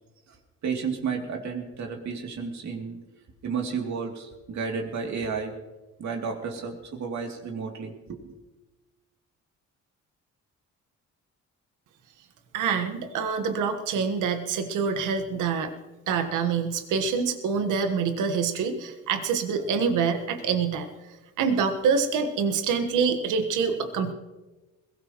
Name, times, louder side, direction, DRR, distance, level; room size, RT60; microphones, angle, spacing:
voice 1, 0.6-3.0 3.4-5.5 6.0-8.3, right 5 dB, 65° right, 2 dB, 2.9 m, -32 dB
voice 2, 12.5-15.7 16.1-20.9 21.4-24.1, right 5 dB, 90° right, 7 dB, 1.5 m, -26 dB
21.5 x 17.0 x 3.1 m, 1.1 s
cardioid pair, 90°, 30 cm